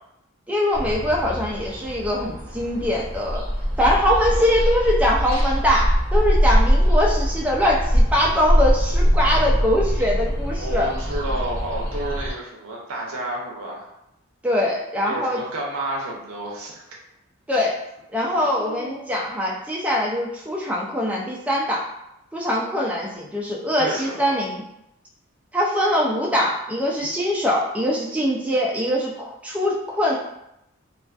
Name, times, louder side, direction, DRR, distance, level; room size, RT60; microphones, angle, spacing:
voice 1, 0.5-3.4 3.8-10.9 14.4-15.4 17.5-17.8 18.1-21.9 22.3-24.6 25.5-30.1, left 1 dB, 5° right, -3 dB, 0.3 m, -22 dB
sound 1, 0.7-12.3, equal, 15° left, 0.8 m, -22 dB
voice 2, 10.6-13.9 15.0-16.8 18.3-19.1 23.8-24.4, right 1 dB, 85° right, -2 dB, 0.5 m, -31 dB
2.4 x 2.3 x 2.3 m, 0.83 s
head